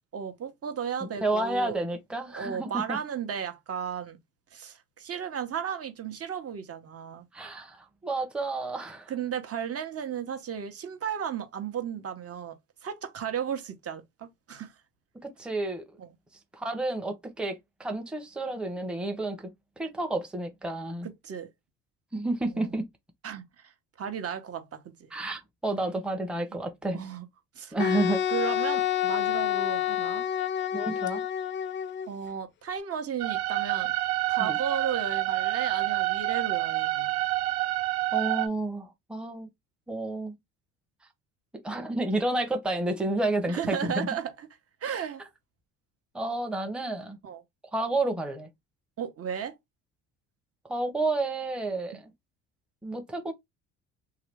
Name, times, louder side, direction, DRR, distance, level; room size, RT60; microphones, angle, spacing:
voice 1, 0.1-1.8 2.3-4.2 4.5-7.2 9.1-12.6 12.8-14.7 16.0-16.1 21.0-21.5 22.5-22.7 23.2-23.7 24.0-24.8 26.9-27.3 27.5-27.7 28.3-30.2 32.1-33.9 34.3-37.1 43.5-44.5 44.8-45.2 47.2-47.4 49.0-49.5, right 8 dB, 45° right, 0.9 m, -34 dB
voice 2, 1.0-3.0 7.3-9.1 15.2-15.8 16.5-19.4 19.8-21.1 22.1-22.8 25.1-27.0 27.7-28.2 30.7-31.2 34.4-34.6 38.1-39.5 39.9-40.4 41.6-44.1 46.1-47.2 47.7-48.5 50.7-52.1 52.8-53.3, right 2 dB, 5° right, 0.8 m, -30 dB
Wind instrument woodwind instrument, 27.8-32.1, left 10 dB, 35° left, 0.4 m, -28 dB
sound 1, 33.2-38.5, right 17 dB, 85° right, 0.6 m, -28 dB
2.8 x 2.3 x 3.3 m
supercardioid pair, 70°, 34 cm